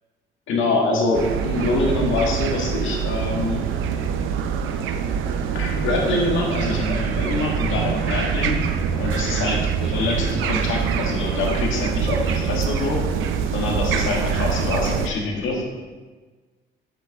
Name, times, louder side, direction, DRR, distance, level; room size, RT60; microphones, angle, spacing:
voice 1, 0.5-3.7 5.5-8.6 9.0-13.1 13.5-15.6, left 2 dB, 80° left, -1 dB, 1.7 m, -25 dB
sound 1, 1.1-15.1, right 7 dB, 90° right, 0.6 m, -24 dB
8.4 x 6.5 x 3.5 m, 1.3 s
cardioid pair, 90°, 20 cm